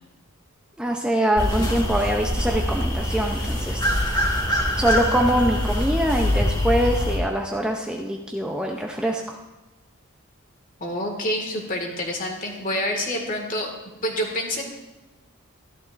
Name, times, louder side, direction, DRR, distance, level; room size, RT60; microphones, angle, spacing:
voice 1, 0.8-3.9 4.8-9.4, right 1 dB, 5° right, 1 dB, 0.6 m, -24 dB
sound 1, 1.3-7.2, left 1 dB, 20° left, 2.0 m, -24 dB
voice 2, 10.8-13.7 14.0-14.6, left 1 dB, 40° left, 1 dB, 2.0 m, -27 dB
13.5 x 12.0 x 2.6 m, 1.1 s
head